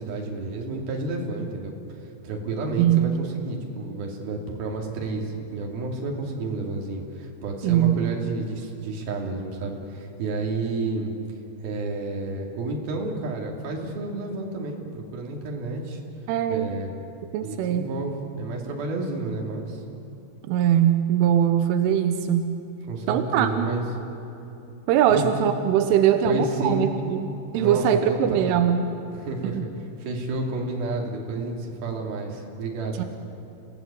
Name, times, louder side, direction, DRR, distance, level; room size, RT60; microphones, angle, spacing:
voice 1, 0.0-1.7 2.2-11.1 11.6-16.0 16.5-16.9 17.4-19.8 22.9-23.8 25.1-25.3 26.2-26.9 27.5-28.6 29.1-29.7 30.0-33.1, right 3 dB, 55° right, 0 dB, 4.3 m, -30 dB
voice 2, 7.6-8.0 16.3-16.7 17.3-17.9 20.5-22.5 23.1-23.7 24.9-28.9 29.4-29.7 33.0-33.1, right 9 dB, 85° right, 8 dB, 3.4 m, -21 dB
29.0 x 17.0 x 8.6 m, 2.9 s
omnidirectional pair, 5.5 m